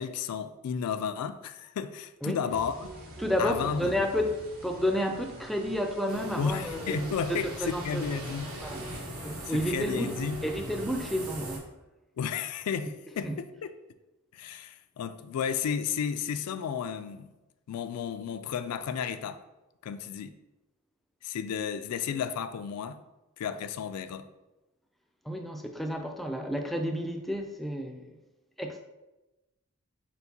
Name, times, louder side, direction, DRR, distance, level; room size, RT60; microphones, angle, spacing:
voice 1, 0.0-2.9 3.4-4.1 6.4-8.5 8.9-9.0 9.5-10.4 12.2-13.7 14.3-17.3 17.7-19.4 19.8-20.3 21.2-23.0 23.4-24.3, left 7 dB, 85° left, 0.3 m, -33 dB
sound 1, 2.5-9.0, right 1 dB, 70° right, 1.0 m, -47 dB
sound 2, 2.8-11.6, right 2 dB, 40° right, 0.6 m, -50 dB
voice 2, 3.2-8.2 8.6-8.8 9.2-11.7 13.2-13.4 25.3-28.2 28.6-28.8, equal, ahead, 0.3 m, -31 dB
sound 3, 6.1-11.6, equal, 85° right, 1.1 m, -40 dB
4.4 x 4.4 x 2.7 m
head